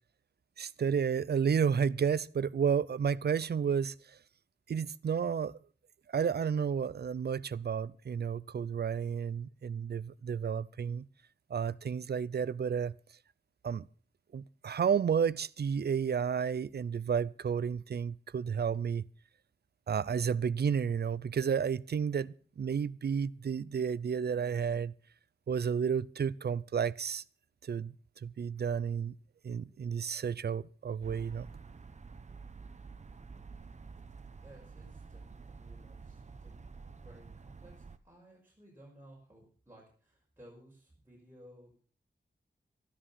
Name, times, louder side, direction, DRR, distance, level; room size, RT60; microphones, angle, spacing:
voice 1, 0.6-4.2 4.7-5.6 6.1-11.1 11.5-12.9 13.6-13.9 14.3-19.0 19.9-24.9 25.5-27.2 27.6-27.9 28.2-29.1 29.4-31.5, right 7 dB, 60° right, 0.6 m, -31 dB
sound 1, 31.0-38.0, right 4 dB, 40° right, 1.0 m, -49 dB
voice 2, 34.4-36.6 37.0-41.7, right 1 dB, 10° right, 5.4 m, -57 dB
13.0 x 12.5 x 5.8 m
wide cardioid pair, 105°, 18 cm